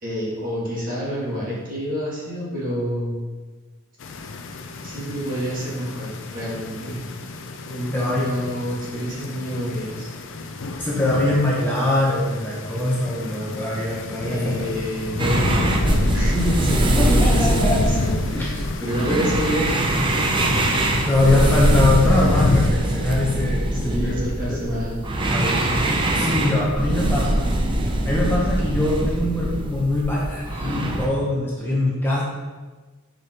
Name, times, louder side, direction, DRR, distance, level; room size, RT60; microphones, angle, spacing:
voice 1, 0.0-3.3 4.8-7.1 7.7-10.1 14.2-20.0 23.7-25.0, equal, 40° right, -6 dB, 1.8 m, -28 dB
sound 1, 4.0-22.7, left 3 dB, 60° left, 0.5 m, -29 dB
voice 2, 7.9-8.3 10.8-14.6 17.0-17.8 18.3-18.5 19.1-19.3 21.1-24.2 24.5-24.9 25.3-27.5 28.0-32.2, left 1 dB, 10° left, -6 dB, 0.9 m, -22 dB
sound 2, 15.2-31.1, right 1 dB, 20° right, 0.5 m, -23 dB
6.6 x 5.1 x 2.9 m, 1.3 s
head